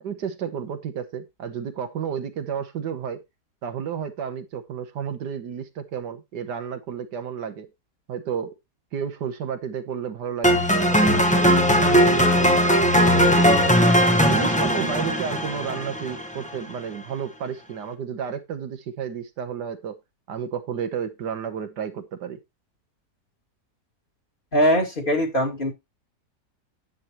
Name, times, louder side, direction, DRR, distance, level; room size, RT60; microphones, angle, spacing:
voice 1, 0.0-3.2 3.6-7.7 8.1-8.5 8.9-12.5 12.9-13.8 14.3-20.0 20.3-22.4, right 7 dB, 75° right, 1.7 m, -31 dB
sound 1, 10.4-16.6, equal, 5° left, 1.0 m, -19 dB
voice 2, 24.5-25.7, equal, 30° left, 2.6 m, -21 dB
10.0 x 8.3 x 3.0 m
omnidirectional pair, 1.8 m